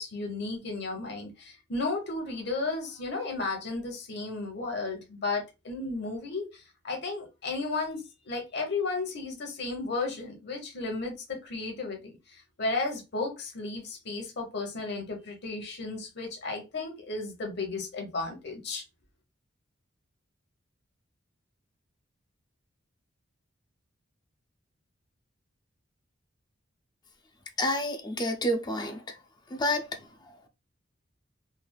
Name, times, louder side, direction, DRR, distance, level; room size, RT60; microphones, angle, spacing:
voice 1, 0.0-18.8, left 3 dB, 55° left, 0.9 m, -34 dB
voice 2, 27.6-29.2 29.6-29.9, left 1 dB, 20° left, 0.4 m, -28 dB
3.2 x 2.4 x 2.2 m
head